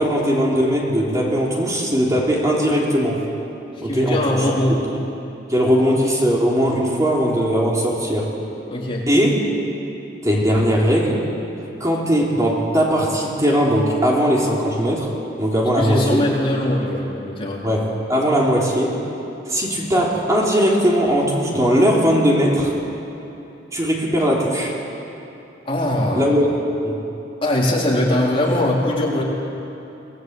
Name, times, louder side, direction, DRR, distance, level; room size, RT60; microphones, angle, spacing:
voice 1, 0.0-3.2 3.8-4.5 5.5-8.3 9.1-9.4 10.2-11.3 11.8-15.1 15.4-16.2 17.6-19.0 19.5-22.7 23.7-24.7 26.1-26.5 26.8-27.0, equal, 20° right, -3 dB, 3.4 m, -19 dB
voice 2, 3.8-4.8 8.7-9.0 15.8-17.6 25.7-26.2 27.4-29.2, left 1 dB, 30° left, -4 dB, 4.0 m, -21 dB
26.5 x 19.0 x 8.2 m, 2.9 s
head